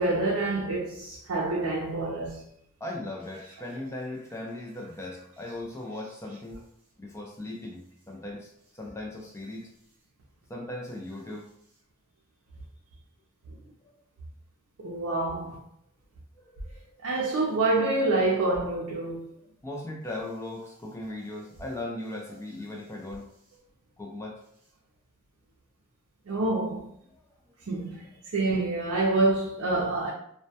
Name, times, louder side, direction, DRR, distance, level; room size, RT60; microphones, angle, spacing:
voice 1, 0.0-2.4 14.8-15.6 17.0-19.2 26.3-26.9 27.7-28.1 28.3-30.1, right 2 dB, 70° right, 0.5 m, -27 dB
voice 2, 2.8-6.6 7.0-9.7 10.5-11.5 16.4-16.8 19.6-23.3 24.0-24.4 27.8-27.9, left 1 dB, 15° left, 0.4 m, -38 dB
2.1 x 2.1 x 2.7 m
head